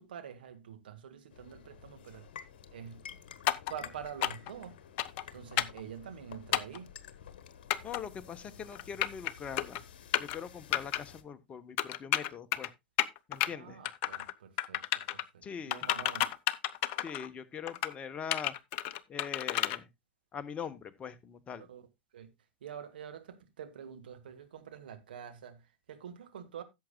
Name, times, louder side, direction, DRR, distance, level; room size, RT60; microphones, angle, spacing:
voice 1, 0.0-2.3 2.7-3.0 3.7-4.8 5.3-6.9 13.4-16.2 21.6-21.9 22.1-22.3 22.6-26.6, right 8 dB, 65° right, 1.8 m, -46 dB
sound 1, 1.3-11.2, left 8 dB, 60° left, 1.2 m, -51 dB
sound 2, 3.5-3.7 4.2-4.5 5.0-5.2 5.6-5.8 6.5-6.8 7.7-8.0 8.8-9.3 9.6-9.8 10.1-10.4 10.7-11.0 11.8-12.7 13.0-13.5 13.8-14.3 14.6-15.2 15.7-17.3 17.7-17.9 18.3-19.8, left 13 dB, 45° left, 0.7 m, -31 dB
voice 2, 7.8-9.8 10.2-12.7 13.3-13.8 15.4-15.9 17.0-18.5 19.1-19.9 20.3-21.7, left 7 dB, 25° left, 1.0 m, -42 dB
16.5 x 7.4 x 2.3 m
figure-of-eight pair, 90°, 6 cm